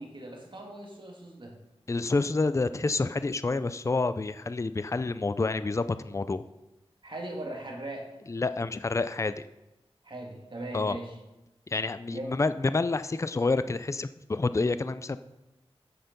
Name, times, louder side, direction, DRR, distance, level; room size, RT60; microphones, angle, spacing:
voice 1, 0.0-1.6 7.0-8.2 10.0-11.2 12.1-12.4, right 1 dB, 50° right, 0 dB, 2.0 m, -39 dB
voice 2, 1.9-6.4 8.3-9.3 10.7-11.0 11.7-15.2, left 3 dB, 30° left, 13 dB, 0.4 m, -28 dB
9.5 x 6.7 x 5.2 m, 1.0 s
wide cardioid pair, 75°, 11 cm